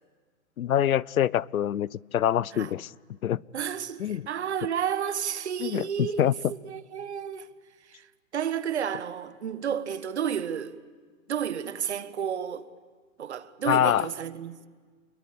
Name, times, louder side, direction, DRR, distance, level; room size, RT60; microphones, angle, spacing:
voice 1, 0.6-2.9 3.2-3.4 4.0-4.3 5.6-6.3 13.7-14.1, left 11 dB, 80° left, 0.7 m, -25 dB
voice 2, 3.5-7.5 7.9-8.1 8.3-10.8 11.3-12.7 13.2-14.7, right 8 dB, 50° right, 1.4 m, -31 dB
29.0 x 22.0 x 8.6 m
hypercardioid pair, 175°, 42 cm